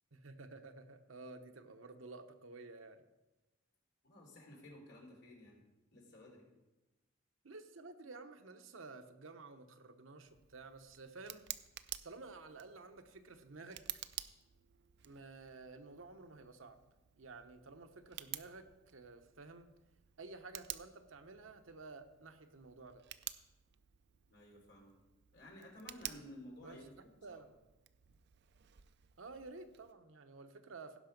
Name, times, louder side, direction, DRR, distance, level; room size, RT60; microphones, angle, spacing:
voice 1, 0.1-3.0 7.4-11.4 12.0-14.0 15.0-16.8 17.2-19.7 20.2-23.0 26.6-26.8 27.2-27.5 29.2-31.0, right 3 dB, 85° right, 7 dB, 0.9 m, -52 dB
voice 2, 4.0-5.6 5.9-6.5 24.3-24.9 25.3-27.4, left 1 dB, 60° left, -1 dB, 3.4 m, -54 dB
Tick, 10.3-29.9, right 13 dB, 55° right, 0.5 m, -52 dB
16.5 x 5.7 x 5.2 m, 1.1 s
head